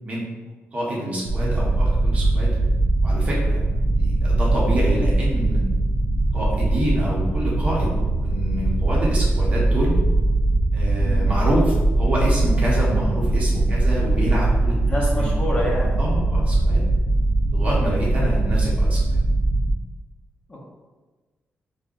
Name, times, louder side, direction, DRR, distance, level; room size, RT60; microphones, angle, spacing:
voice 1, 0.7-2.5 3.0-3.6 4.0-5.6 6.3-10.0 10.7-15.3 15.8-16.8 17.5-19.0, equal, 30° right, -5 dB, 0.9 m, -27 dB
sound 1, 1.2-19.7, right 2 dB, 55° right, 0.4 m, -21 dB
voice 2, 11.0-11.3 14.9-15.9 20.5-20.6, left 1 dB, 25° left, -5 dB, 0.7 m, -27 dB
5.2 x 2.2 x 2.4 m, 1.3 s
wide cardioid pair, 170°, 5 cm